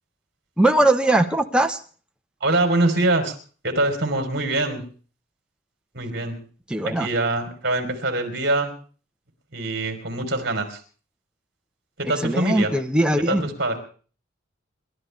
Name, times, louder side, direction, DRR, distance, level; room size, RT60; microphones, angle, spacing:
voice 1, 0.6-1.8 6.7-7.1 12.2-13.5, right 1 dB, 5° right, 4 dB, 1.1 m, -20 dB
voice 2, 2.4-3.4 3.6-4.8 5.9-6.4 6.8-8.7 9.5-10.8 12.0-12.7 13.2-13.8, right 2 dB, 50° right, 5 dB, 3.8 m, -24 dB
29.5 x 12.5 x 3.4 m, 0.41 s
head